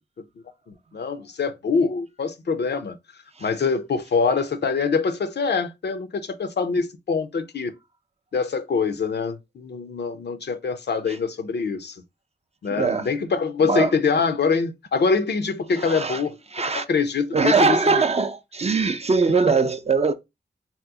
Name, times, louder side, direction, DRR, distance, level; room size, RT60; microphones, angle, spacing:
voice 1, 0.7-3.0 3.4-7.7 8.3-12.0 12.6-16.4 16.7-18.0, left 5 dB, 65° left, 0.5 m, -24 dB
voice 2, 12.7-13.1 13.7-13.9 15.8-16.2 16.5-16.9 17.3-20.1, right 4 dB, 35° right, 0.4 m, -21 dB
2.9 x 2.0 x 3.4 m
cardioid pair, 40°, 19 cm